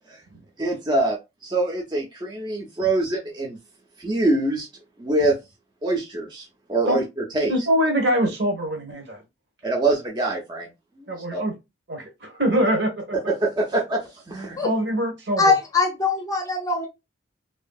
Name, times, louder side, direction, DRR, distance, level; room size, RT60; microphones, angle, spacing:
voice 1, 0.6-1.2 1.4-3.6 4.0-4.7 5.0-5.3 5.8-7.5 9.6-10.7 11.0-11.4 13.3-14.0 14.3-14.7, right 2 dB, 25° right, 0.6 m, -24 dB
voice 2, 7.5-9.2 11.1-11.5 11.9-13.0 14.6-15.5, equal, 60° right, 1.1 m, -23 dB
voice 3, 15.4-16.9, left 4 dB, 20° left, 0.6 m, -21 dB
3.0 x 2.6 x 2.3 m
head